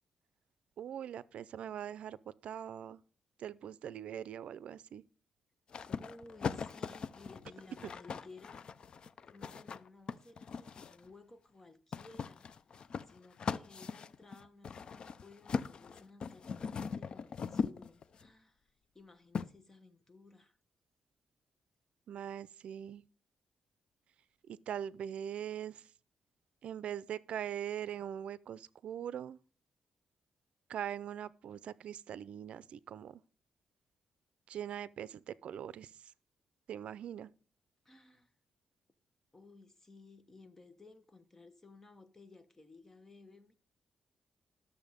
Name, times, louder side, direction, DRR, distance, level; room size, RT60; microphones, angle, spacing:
voice 1, 0.8-3.0 3.4-5.0 7.8-7.9 22.1-23.0 24.5-25.9 26.6-29.4 30.7-33.2 34.5-36.1 36.7-37.3, right 9 dB, 75° right, 0.5 m, -42 dB
sound 1, 5.7-11.1 11.9-18.3 19.3-19.5, left 5 dB, 50° left, 0.6 m, -40 dB
voice 2, 5.8-8.7 9.3-12.5 13.0-20.6 37.8-38.3 39.3-43.5, left 3 dB, 20° left, 1.2 m, -57 dB
12.5 x 7.0 x 5.1 m
cardioid pair, 120°, 2 cm